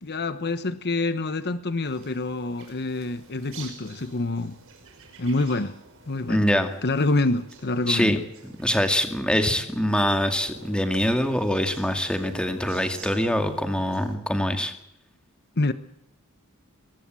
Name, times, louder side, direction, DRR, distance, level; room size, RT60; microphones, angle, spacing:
voice 1, 0.0-4.6 5.2-5.7 6.1-6.4 6.8-8.2 15.6-15.7, left 2 dB, 50° left, 1.1 m, -26 dB
sound 1, 1.8-14.2, right 3 dB, 65° right, 5.7 m, -47 dB
voice 2, 6.3-6.7 7.9-8.2 8.4-14.7, equal, 5° left, 2.3 m, -24 dB
22.5 x 20.0 x 7.7 m
head